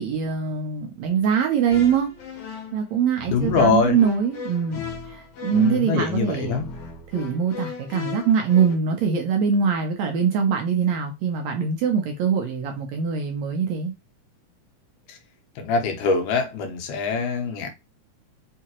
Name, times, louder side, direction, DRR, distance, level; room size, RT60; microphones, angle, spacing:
voice 1, 0.0-2.1 2.7-6.6 7.1-13.9, right 6 dB, 75° right, 1.7 m, -23 dB
sound 1, 1.7-8.8, left 5 dB, 60° left, 1.6 m, -37 dB
voice 2, 3.3-4.0 5.5-6.6 15.6-17.7, left 4 dB, 85° left, 2.6 m, -23 dB
5.7 x 2.8 x 2.9 m
omnidirectional pair, 3.7 m